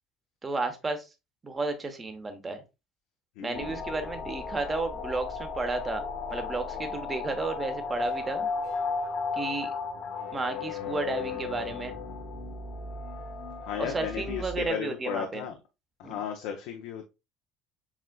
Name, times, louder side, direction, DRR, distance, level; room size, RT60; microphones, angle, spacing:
voice 1, 0.4-1.1 1.4-2.6 3.4-6.0 6.3-8.5 9.3-9.7 10.3-11.9 13.8-15.4 16.0-16.2, right 3 dB, 25° right, 7 dB, 1.0 m, -32 dB
voice 2, 3.4-3.8 13.6-15.6 16.0-17.0, left 8 dB, 80° left, 4 dB, 0.6 m, -35 dB
sound 1, 3.5-14.7, left 4 dB, 60° left, 1.1 m, -35 dB
7.2 x 2.5 x 2.2 m, 0.26 s
supercardioid pair, 105°, 0 cm